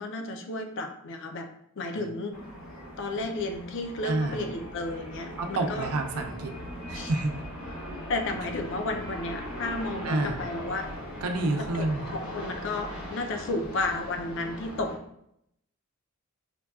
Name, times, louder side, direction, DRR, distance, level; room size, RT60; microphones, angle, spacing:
voice 1, 0.0-1.5 1.8-2.4 3.0-5.9 6.9-7.1 8.1-10.9 11.7-11.9 12.1-14.9, left 2 dB, 55° left, 4 dB, 0.4 m, -32 dB
sound 1, 2.3-14.9, equal, 80° left, 0.9 m, -39 dB
voice 2, 4.0-4.4 5.4-6.5 6.9-7.3 10.0-10.4 11.2-12.1, right 2 dB, 80° right, 4 dB, 0.4 m, -29 dB
5.0 x 2.2 x 2.3 m, 0.77 s
head